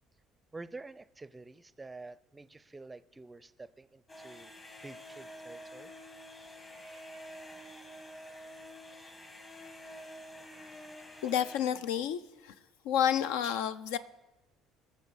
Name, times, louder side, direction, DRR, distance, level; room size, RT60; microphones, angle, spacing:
voice 1, 0.5-4.5 4.8-5.9, right 3 dB, 20° right, 17 dB, 0.5 m, -48 dB
sound 1, 4.1-12.1, equal, 30° left, 1.8 m, -48 dB
voice 2, 11.2-12.6 12.8-14.0, left 9 dB, 75° left, 14 dB, 0.5 m, -30 dB
19.5 x 6.7 x 4.8 m, 1.0 s
hypercardioid pair, 60°, 0 cm